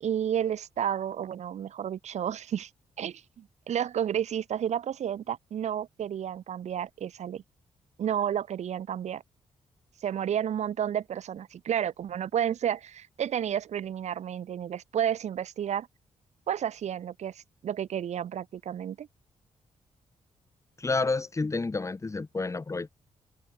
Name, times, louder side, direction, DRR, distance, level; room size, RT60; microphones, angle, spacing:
voice 1, 0.0-2.7 3.0-7.4 8.0-9.2 10.0-15.9 16.5-19.1, right 9 dB, 70° right, 1.8 m, -31 dB
voice 2, 20.8-22.9, left 3 dB, 25° left, 2.0 m, -29 dB
cardioid pair, 85°, 12 cm